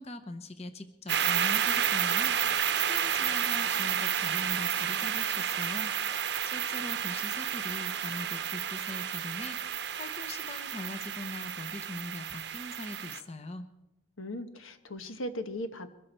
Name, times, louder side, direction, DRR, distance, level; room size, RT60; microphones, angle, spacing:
voice 1, 0.0-13.7, left 2 dB, 30° left, 9 dB, 0.8 m, -42 dB
sound 1, 1.1-13.2, right 9 dB, 55° right, 0.8 m, -31 dB
voice 2, 14.2-15.9, left 1 dB, 90° left, 8 dB, 1.3 m, -38 dB
22.5 x 13.5 x 4.4 m, 0.88 s
head